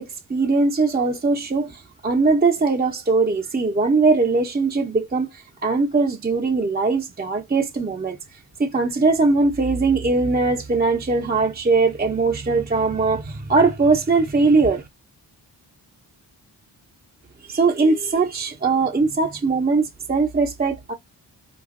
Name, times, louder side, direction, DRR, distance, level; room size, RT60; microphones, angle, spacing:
voice 1, 0.0-8.2 8.6-14.9 17.5-20.9, right 3 dB, 20° right, 0.7 m, -20 dB
5.0 x 2.4 x 3.6 m
wide cardioid pair, 105°, 43 cm